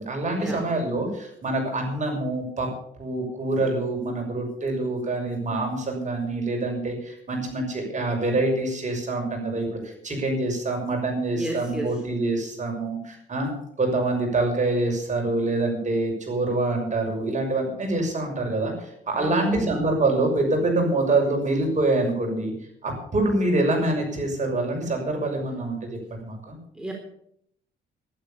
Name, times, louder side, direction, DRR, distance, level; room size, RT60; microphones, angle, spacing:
voice 1, 0.0-2.7 3.0-13.5 13.8-22.5 22.8-26.6, right 2 dB, 35° right, 1 dB, 6.4 m, -25 dB
voice 2, 11.3-11.9 19.2-19.7 26.8-26.9, right 1 dB, 5° right, 0 dB, 3.8 m, -32 dB
12.0 x 12.0 x 7.2 m, 0.70 s
cardioid pair, 90°, 20 cm